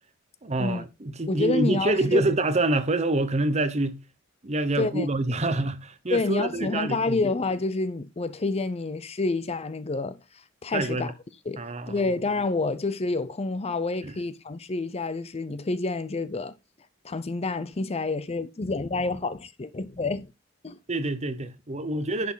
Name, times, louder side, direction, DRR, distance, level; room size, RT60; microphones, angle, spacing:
voice 1, 0.4-4.0 4.4-7.2 10.7-11.1 11.6-12.0 14.0-14.1 20.9-22.3, right 2 dB, 35° right, 1.0 m, -26 dB
voice 2, 1.3-2.2 4.8-5.1 6.1-10.2 10.6-11.1 11.5-16.5 17.0-20.3 20.6-20.8, left 3 dB, 30° left, 0.6 m, -28 dB
10.5 x 6.0 x 3.9 m
head